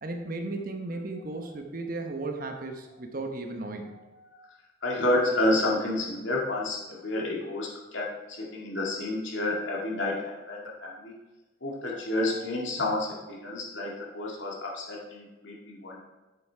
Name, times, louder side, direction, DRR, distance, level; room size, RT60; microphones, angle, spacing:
voice 1, 0.0-4.0, right 2 dB, 50° right, 4 dB, 1.0 m, -35 dB
voice 2, 4.8-11.1 11.6-16.0, left 1 dB, 80° left, -3 dB, 2.2 m, -30 dB
8.5 x 6.9 x 4.5 m, 1.1 s
head